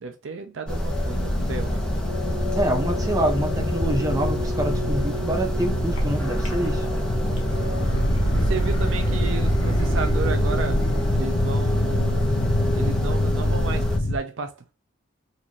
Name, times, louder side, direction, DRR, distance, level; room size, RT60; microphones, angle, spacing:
voice 1, 0.0-1.8 2.2-2.3 7.3-7.8 8.4-10.8 11.1-12.4 12.7-14.7, right 4 dB, 60° right, 0.5 m, -33 dB
sound 1, 0.7-14.0, equal, 5° left, 0.9 m, -26 dB
sound 2, 1.1-14.2, left 2 dB, 50° left, 0.6 m, -28 dB
voice 2, 2.5-6.9, right 1 dB, 15° right, 0.6 m, -26 dB
sound 3, 6.0-6.1 6.4-7.0 7.3-11.3, right 1 dB, 75° left, 1.3 m, -26 dB
4.0 x 2.6 x 3.0 m
head